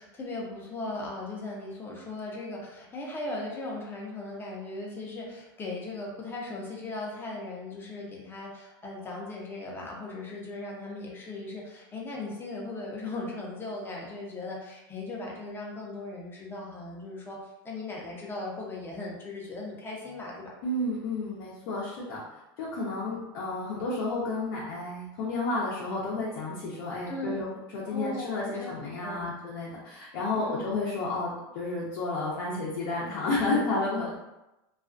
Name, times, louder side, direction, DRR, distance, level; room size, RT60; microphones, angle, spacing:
voice 1, 0.0-17.4 17.6-20.5 27.1-27.4 27.8-28.7 29.0-29.3 30.3-30.7, left 2 dB, 15° left, -2 dB, 0.6 m, -38 dB
voice 2, 20.6-22.2 22.6-34.2, left 2 dB, 65° left, -6 dB, 0.6 m, -31 dB
2.3 x 2.3 x 2.5 m, 0.96 s
supercardioid pair, 130°, 12 cm